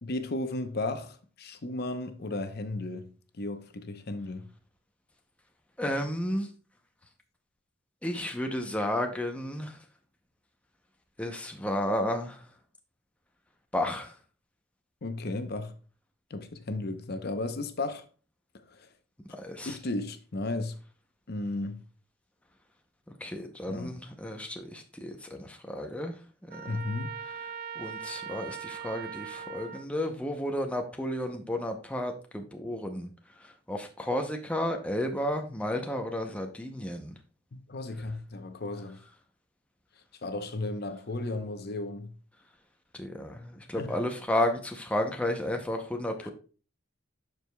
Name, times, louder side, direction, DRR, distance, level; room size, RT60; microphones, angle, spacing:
voice 1, 0.0-4.5 15.0-15.8 16.3-18.1 18.5-18.9 19.7-20.8 21.3-21.8 23.7-24.0 26.7-27.1 37.5-39.0 40.2-42.1 43.7-44.1 46.2-46.3, left 2 dB, 50° left, 0.7 m, -35 dB
voice 2, 5.8-6.5 8.0-9.7 11.2-12.4 13.7-14.1 19.3-19.7 23.2-26.1 26.5-26.6 27.8-33.1 33.7-37.1 42.9-46.3, left 1 dB, 5° left, 0.6 m, -32 dB
Trumpet, 26.5-29.9, right 7 dB, 45° right, 0.3 m, -40 dB
12.0 x 4.7 x 2.2 m
head